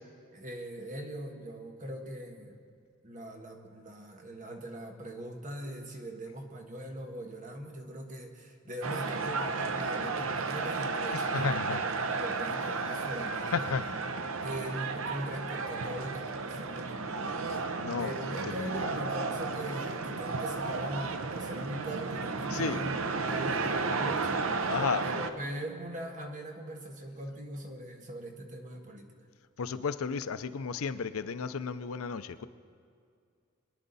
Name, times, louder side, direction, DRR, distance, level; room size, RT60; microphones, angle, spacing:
voice 1, 0.3-2.6 3.0-11.6 11.9-13.7 14.4-17.6 17.9-23.0 23.3-24.7 25.0-29.1, right 1 dB, 40° right, 3 dB, 1.4 m, -41 dB
sound 1, 8.8-25.3, right 4 dB, 70° right, 0.7 m, -33 dB
voice 2, 11.3-11.8 13.5-13.8 17.8-18.1 18.6-18.9 22.5-22.8 24.7-25.0 29.6-32.5, left 5 dB, 85° left, 13 dB, 0.5 m, -33 dB
23.0 x 10.5 x 4.1 m, 2.3 s
head